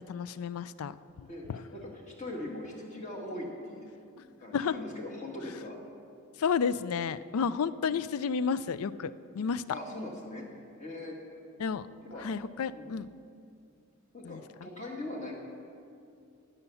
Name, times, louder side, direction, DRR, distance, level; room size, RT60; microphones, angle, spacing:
voice 1, 0.1-1.6 4.5-4.8 6.4-9.6 11.6-11.9 12.2-13.1 14.2-14.7, left 6 dB, 85° left, 16 dB, 0.4 m, -32 dB
voice 2, 1.3-3.9 4.1-5.8 9.7-10.4 10.8-11.2 12.1-12.2 12.7-13.0 14.1-15.3, left 1 dB, 30° left, -1 dB, 1.7 m, -41 dB
16.5 x 5.7 x 7.0 m, 2.5 s
head